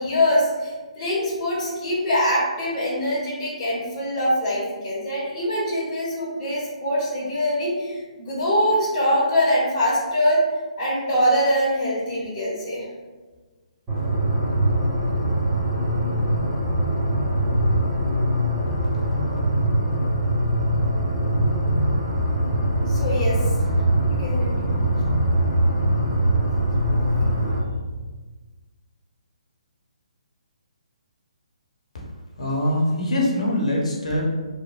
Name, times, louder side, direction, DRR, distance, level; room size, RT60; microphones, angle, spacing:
voice 1, 0.0-10.4 10.8-12.9 22.9-23.4 24.1-24.8, equal, 25° left, -7 dB, 0.8 m, -23 dB
sound 1, 13.9-27.6, right 1 dB, 15° right, 0.8 m, -22 dB
voice 2, 32.4-34.2, left 1 dB, 60° left, -3 dB, 0.8 m, -23 dB
2.8 x 2.1 x 2.4 m, 1.3 s
figure-of-eight pair, 135°, 4 cm